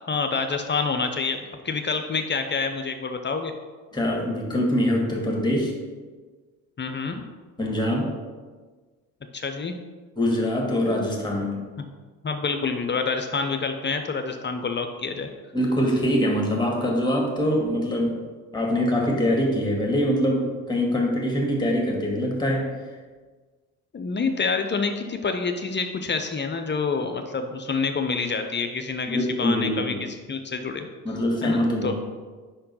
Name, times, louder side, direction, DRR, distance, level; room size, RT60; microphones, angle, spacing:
voice 1, 0.0-3.5 6.8-7.2 9.3-9.7 12.2-15.3 23.9-30.9 31.4-31.9, left 4 dB, 25° left, 6 dB, 0.6 m, -27 dB
voice 2, 3.9-5.7 7.6-8.1 10.2-11.6 15.5-18.2 18.5-22.7 29.1-30.0 31.0-31.9, equal, 10° left, -1 dB, 2.0 m, -23 dB
5.3 x 4.4 x 5.5 m, 1.4 s
figure-of-eight pair, 50°, 44 cm